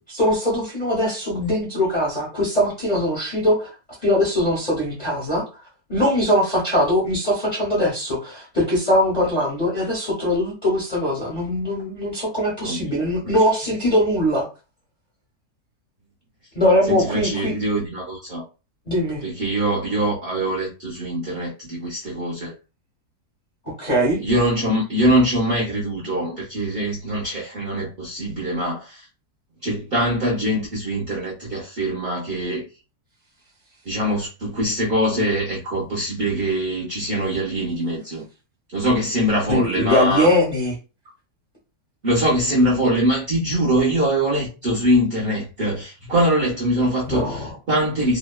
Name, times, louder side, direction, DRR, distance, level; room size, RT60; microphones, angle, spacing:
voice 1, 0.1-3.7 4.0-5.4 5.9-14.4 16.5-17.5 18.9-19.2 23.7-24.2 39.5-40.7 47.1-47.5, left 1 dB, 35° left, 0.6 m, -21 dB
voice 2, 16.9-18.4 19.2-22.5 24.2-29.0 29.6-32.6 33.9-38.2 38.7-40.3 42.0-48.2, right 1 dB, 50° right, 0.7 m, -23 dB
2.8 x 2.0 x 2.2 m
omnidirectional pair, 1.7 m